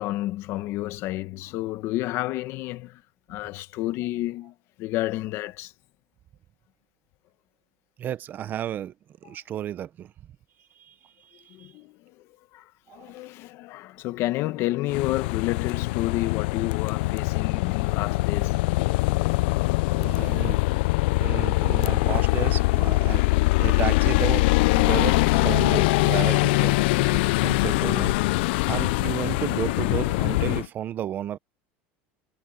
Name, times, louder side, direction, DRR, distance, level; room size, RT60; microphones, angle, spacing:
voice 1, 0.0-3.0 3.3-5.7 11.5-18.6 20.3-20.5, left 16 dB, 50° left, 1.5 m, -30 dB
voice 2, 8.0-8.9 9.2-10.1 10.8-11.7 12.9-13.1 20.0-20.6 21.2-23.2 23.6-28.2 28.7-31.4, right 11 dB, 35° right, 0.8 m, -33 dB
sound 1, 14.9-30.7, left 22 dB, 75° left, 0.4 m, -23 dB
supercardioid pair, 145°, 6 cm